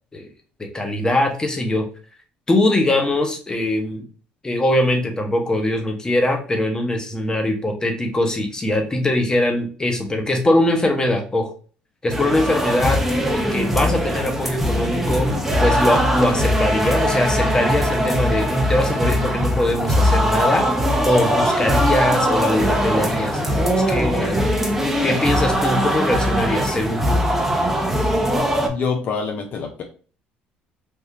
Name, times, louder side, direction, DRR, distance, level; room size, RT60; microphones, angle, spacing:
voice 1, 0.6-1.9 2.5-4.0 4.4-11.5 12.0-13.0 13.3-15.3 15.6-20.7 21.0-23.6 23.9-24.4 25.0-27.2, left 1 dB, 20° left, 3 dB, 0.9 m, -21 dB
sound 1, 12.1-28.7, equal, 10° right, 0.7 m, -20 dB
voice 2, 28.7-29.8, left 5 dB, 55° left, 3 dB, 0.5 m, -25 dB
3.6 x 2.6 x 2.8 m, 0.40 s
cardioid pair, 95°, 4 cm